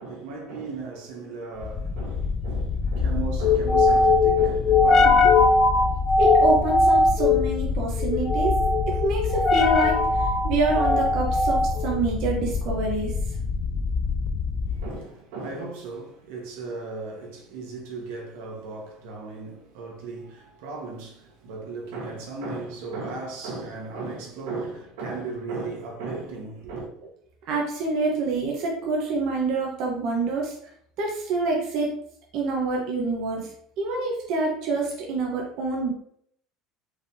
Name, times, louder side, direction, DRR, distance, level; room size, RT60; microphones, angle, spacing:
voice 1, 0.0-5.5 14.6-26.9, right 3 dB, 85° right, 1.3 m, -36 dB
sound 1, 1.6-15.0, left 3 dB, 35° left, 0.5 m, -21 dB
voice 2, 6.2-8.6 8.9-13.1 27.5-30.5 31.0-31.9 32.3-33.5 33.8-35.9, right 3 dB, 60° right, 1.0 m, -26 dB
5.1 x 3.5 x 2.7 m
cardioid pair, 140°, 0 cm